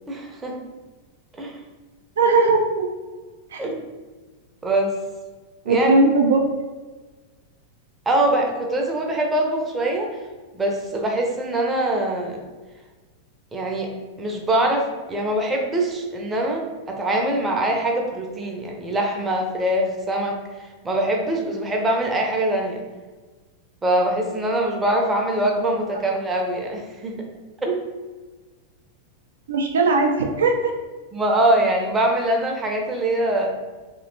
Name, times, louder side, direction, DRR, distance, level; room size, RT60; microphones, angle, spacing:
voice 1, 0.1-0.6 1.3-1.6 3.6-3.8 4.6-4.9 5.7-5.9 8.1-10.1 10.5-12.4 13.5-13.9 14.2-22.8 23.8-27.2 27.6-27.8 31.1-33.5, right 1 dB, 15° right, 0 dB, 0.6 m, -23 dB
voice 2, 2.2-2.9 3.5-3.6 5.7-6.4 29.5-30.7, right 3 dB, 65° right, 3 dB, 0.4 m, -18 dB
3.1 x 2.9 x 2.6 m, 1.3 s
figure-of-eight pair, 90°, 0 cm